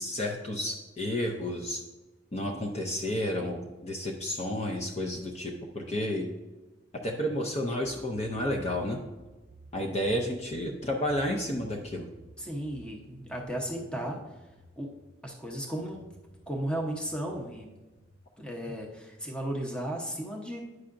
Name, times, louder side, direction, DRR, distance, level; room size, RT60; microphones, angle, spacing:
voice 1, 0.0-1.8 2.3-6.3 6.9-9.0 9.7-12.1, left 1 dB, 35° left, 1 dB, 0.6 m, -31 dB
sound 1, 7.8-15.1 15.8-18.3, right 2 dB, 30° right, 0.4 m, -54 dB
voice 2, 12.4-14.3 14.8-14.9 15.2-16.0 16.5-17.7 18.4-20.6, right 1 dB, 5° left, 0 dB, 0.8 m, -35 dB
9.6 x 5.6 x 2.5 m, 1.2 s
head